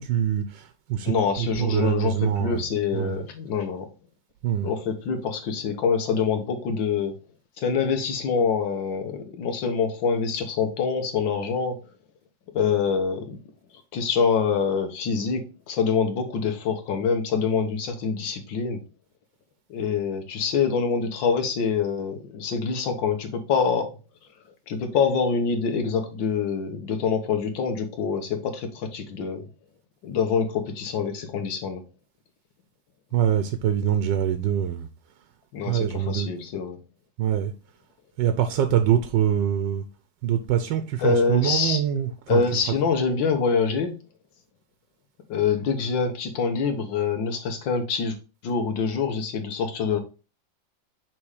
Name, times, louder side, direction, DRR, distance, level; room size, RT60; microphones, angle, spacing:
voice 1, 0.0-2.6 2.9-3.2 4.4-4.7 33.1-34.9 35.7-36.3 37.2-37.5 38.2-39.8 40.2-42.4, right 10 dB, 75° right, 1.3 m, -24 dB
voice 2, 1.1-3.9 4.6-7.1 7.6-11.8 12.5-13.4 13.9-18.8 19.7-23.9 24.7-29.5 30.0-31.8 35.5-36.8 41.0-41.8 42.3-44.0 45.3-48.2 48.4-50.0, left 5 dB, 75° left, 1.9 m, -25 dB
6.1 x 3.7 x 4.8 m
omnidirectional pair, 2.1 m